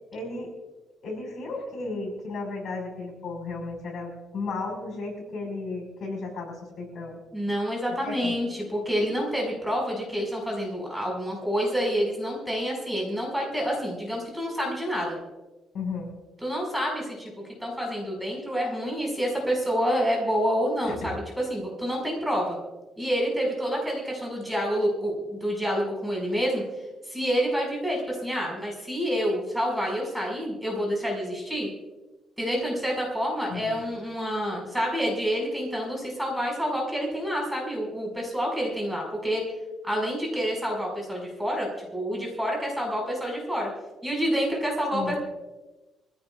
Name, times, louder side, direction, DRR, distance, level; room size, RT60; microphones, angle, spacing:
voice 1, 0.1-0.5 1.0-7.2 7.9-8.4 15.7-16.1 20.8-21.0 33.5-33.8 44.9-45.2, left 3 dB, 55° left, 1 dB, 5.5 m, -34 dB
voice 2, 7.3-15.2 16.4-17.3 17.6-22.6 23.0-26.6 27.1-31.7 32.4-39.4 39.8-43.7 44.0-45.2, equal, 5° right, -1 dB, 5.6 m, -28 dB
24.5 x 16.5 x 2.5 m, 1.1 s
cardioid pair, 135°, 0 cm